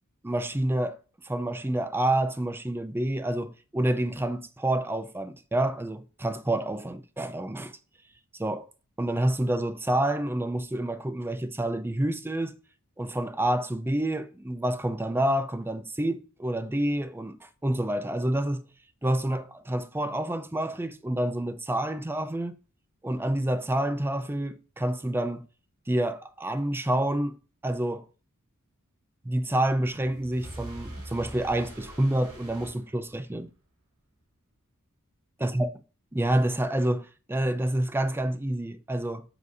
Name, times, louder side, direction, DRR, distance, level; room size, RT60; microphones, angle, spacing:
voice 1, 0.2-1.0 1.2-7.7 8.4-8.7 9.0-12.6 13.0-18.7 19.0-22.6 23.0-25.4 25.9-27.4 27.6-28.1 29.2-33.5 35.4-35.7 36.1-39.2, right 1 dB, 10° right, 0.5 m, -28 dB
sound 1, 29.9-33.5, right 1 dB, 80° right, 2.9 m, -44 dB
7.4 x 3.3 x 5.4 m
head